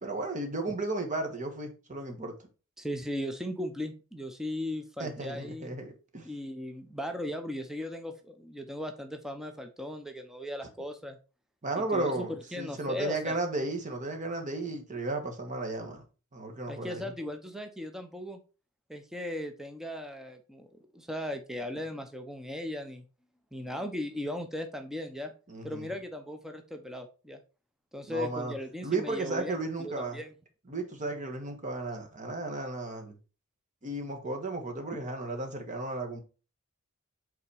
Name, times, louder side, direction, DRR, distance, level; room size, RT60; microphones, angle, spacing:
voice 1, 0.0-2.3 5.0-6.3 11.6-16.0 16.3-17.1 25.5-25.9 28.1-28.5 28.8-30.2 30.7-33.2 33.8-36.2, right 2 dB, 35° right, 1.3 m, -34 dB
voice 2, 2.8-5.7 6.2-11.2 11.9-13.4 16.7-18.4 18.9-20.7 20.9-23.0 23.5-25.3 25.6-27.4 27.9-30.3, left 1 dB, ahead, 0.6 m, -37 dB
5.6 x 4.0 x 4.8 m
head